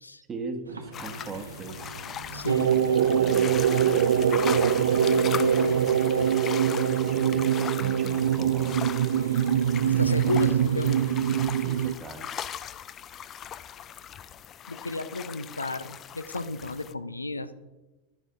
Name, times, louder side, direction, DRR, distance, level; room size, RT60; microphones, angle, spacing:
voice 1, 0.3-2.0 3.1-5.8 7.0-8.8 9.9-10.7 11.6-12.3, right 4 dB, 20° right, 6 dB, 1.1 m, -41 dB
sound 1, 0.6-6.3, right 3 dB, 80° right, 0.8 m, -43 dB
sound 2, 0.9-16.9, left 9 dB, 30° left, 0.3 m, -39 dB
voice 2, 2.3-2.9 9.8-11.2 14.7-17.7, left 2 dB, 80° left, 12 dB, 0.5 m, -33 dB
sound 3, 2.5-11.9, right 8 dB, 65° right, 0.3 m, -23 dB
11.5 x 4.7 x 5.0 m, 1.1 s
figure-of-eight pair, 90°, 0 cm